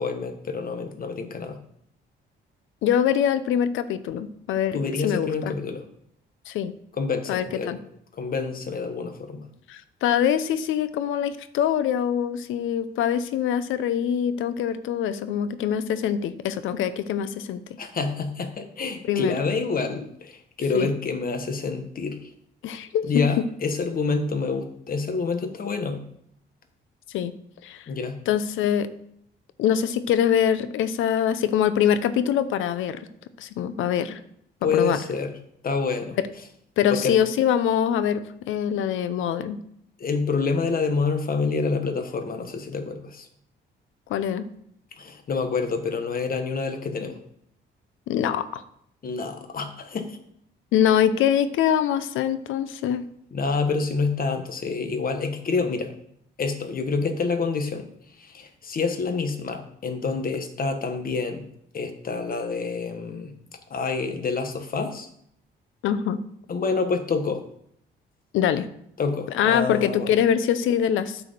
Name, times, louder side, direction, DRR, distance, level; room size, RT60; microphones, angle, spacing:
voice 1, 0.0-1.6 4.7-5.8 7.0-7.8 8.2-9.4 17.8-22.3 23.0-26.0 27.9-28.2 34.6-35.3 35.6-36.2 36.9-37.2 40.0-43.3 45.0-47.2 49.0-50.2 53.3-55.9 56.4-57.9 58.2-61.4 61.7-63.3 63.7-65.1 66.5-67.4 69.0-70.1, left 4 dB, 45° left, 7 dB, 1.4 m, -27 dB
voice 2, 2.8-5.5 6.5-6.7 7.3-7.8 9.7-17.6 19.1-19.4 20.7-20.9 22.6-23.2 27.1-27.3 27.6-27.9 28.3-28.9 29.6-33.0 33.4-34.2 34.7-35.0 36.2-36.3 36.8-39.6 44.1-44.5 48.1-48.6 50.7-53.1 65.8-66.2 68.3-68.7 69.3-71.2, left 9 dB, 85° left, 13 dB, 0.7 m, -24 dB
8.7 x 4.9 x 6.8 m, 0.71 s
cardioid pair, 90°, 20 cm